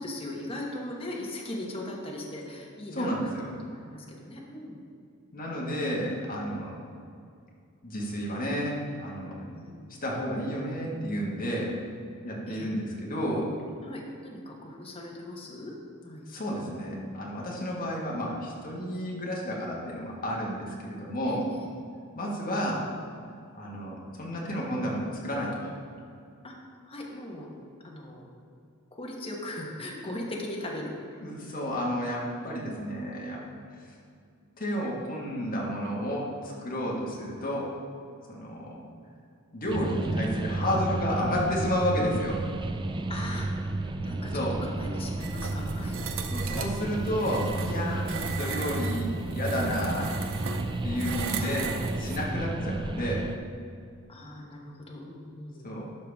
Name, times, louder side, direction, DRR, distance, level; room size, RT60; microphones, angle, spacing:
voice 1, 0.0-3.3 3.7-4.8 9.5-9.7 12.5-12.7 13.8-15.7 16.0-16.2 21.3-21.7 26.4-26.5 26.9-27.5 27.8-28.3 29.0-30.9 32.6-32.8 43.1-43.5 44.0-46.0 51.4-51.5 52.3-52.8 54.1-55.7, left 1 dB, 25° left, -2 dB, 1.1 m, -39 dB
voice 2, 2.9-3.5 5.3-6.8 7.8-9.5 10.0-11.7 12.2-13.5 16.3-21.4 22.1-22.8 23.5-25.7 31.2-33.4 33.8-33.9 34.6-37.7 38.3-38.8 39.5-42.4 44.3-44.6 46.3-50.1 50.8-51.7 52.0-53.3 55.6-55.9, equal, 40° left, -3 dB, 1.7 m, -31 dB
sound 1, 39.7-53.4, right 2 dB, 20° right, 0.3 m, -32 dB
sound 2, 45.2-52.2, right 5 dB, 65° right, 0.7 m, -37 dB
12.0 x 5.8 x 3.5 m, 2.3 s
head